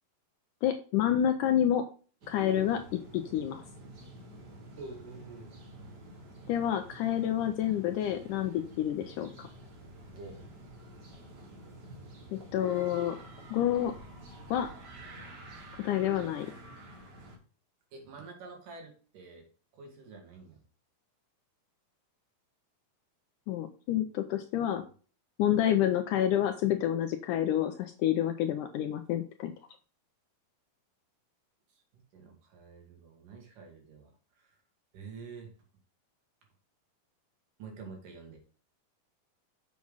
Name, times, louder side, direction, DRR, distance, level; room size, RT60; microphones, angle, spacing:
voice 1, 0.6-1.8 2.3-3.6 6.5-9.5 12.3-13.2 13.5-13.9 14.5-14.7 15.8-16.5 23.5-24.8 25.4-29.5, left 11 dB, 80° left, 7 dB, 1.9 m, -28 dB
sound 1, 2.2-17.4, right 1 dB, 40° right, 1.5 m, -49 dB
voice 2, 4.4-5.5 10.1-10.4 17.9-19.5 19.7-20.6 32.1-34.6 34.9-35.5 37.6-38.4, right 4 dB, 65° right, 2 dB, 3.8 m, -48 dB
7.4 x 7.3 x 3.9 m, 0.39 s
omnidirectional pair, 4.2 m